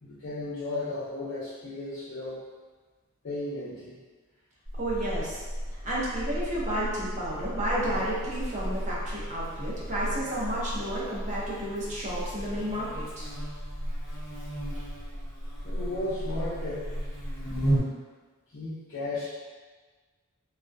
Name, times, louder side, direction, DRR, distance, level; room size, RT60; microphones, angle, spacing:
voice 1, 0.0-2.4 3.2-4.0 14.7-14.8 15.6-16.9 17.4-17.8 18.5-19.3, left 2 dB, 55° left, -11 dB, 0.5 m, -35 dB
Buzz, 4.6-17.8, equal, 15° left, 1.1 m, -34 dB
voice 2, 4.8-5.4 5.8-13.3, right 1 dB, 35° right, -7 dB, 0.6 m, -32 dB
2.3 x 2.1 x 2.5 m, 1.4 s
head